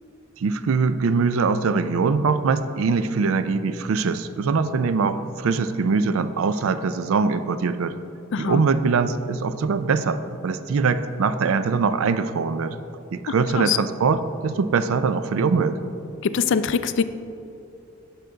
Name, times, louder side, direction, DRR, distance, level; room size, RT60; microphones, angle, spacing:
voice 1, 0.4-8.0 8.4-12.8 13.1-15.8, right 4 dB, 70° right, 12 dB, 0.4 m, -22 dB
voice 2, 8.3-8.6 13.6-13.8 16.2-17.0, left 6 dB, 55° left, 13 dB, 0.3 m, -22 dB
9.9 x 6.4 x 3.9 m, 2.7 s
head